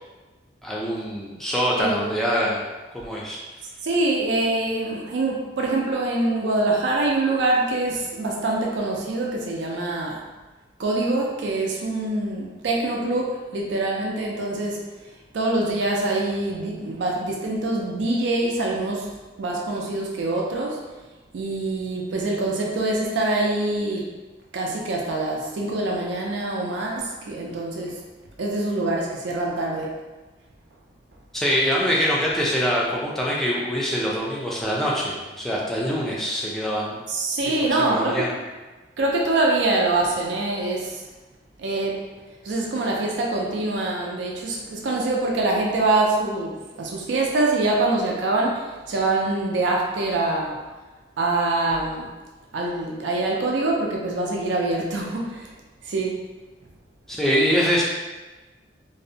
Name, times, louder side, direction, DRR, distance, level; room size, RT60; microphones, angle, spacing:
voice 1, 0.6-2.6 2.9-3.4 31.3-37.0 37.9-38.3 57.1-57.8, equal, ahead, -5 dB, 0.3 m, -24 dB
voice 2, 3.8-10.2 10.8-14.8 15.3-19.1 19.4-20.8 21.3-24.1 24.5-28.0 28.4-29.9 37.1-38.3 39.0-41.0 41.6-42.0 42.4-46.5 46.8-50.6 51.2-52.1 52.5-55.5 55.8-56.2, right 2 dB, 75° right, -1 dB, 0.4 m, -24 dB
2.6 x 2.0 x 2.6 m, 1.2 s
head